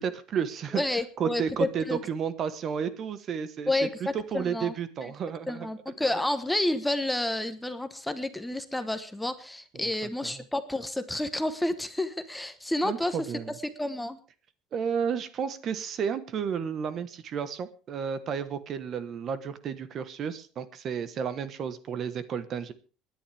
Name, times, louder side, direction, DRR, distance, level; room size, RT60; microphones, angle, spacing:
voice 1, 0.0-0.8 1.2-3.7 4.1-5.7 9.8-9.9 10.2-10.4 12.8-13.5 14.7-22.7, right 7 dB, 40° right, 13 dB, 1.2 m, -32 dB
voice 2, 0.7-2.0 3.7-4.7 5.0-5.1 5.5-13.2 13.8-14.2, left 1 dB, 5° left, 9 dB, 1.1 m, -30 dB
24.5 x 10.5 x 3.4 m, 0.37 s
cardioid pair, 130°, 0 cm